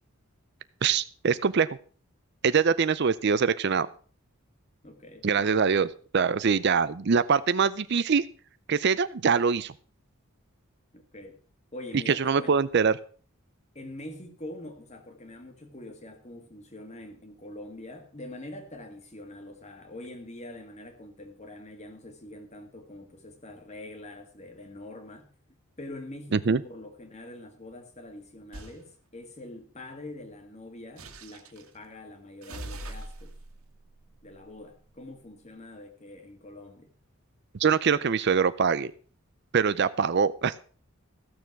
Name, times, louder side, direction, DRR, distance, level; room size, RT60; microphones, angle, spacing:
voice 1, 0.8-1.7 2.4-3.9 5.2-5.9 6.1-8.2 8.7-9.7 12.1-12.9 26.3-26.6 37.6-38.9 39.5-40.5, right 6 dB, 50° right, 0.5 m, -23 dB
voice 2, 4.8-5.7 10.9-11.4 11.7-12.6 13.8-25.3 25.8-33.3 34.2-36.9, left 1 dB, 30° left, 1.8 m, -44 dB
sound 1, 28.5-28.8 31.0-31.7 32.4-35.0, right 1 dB, 80° right, 1.8 m, -43 dB
15.0 x 6.9 x 6.0 m
head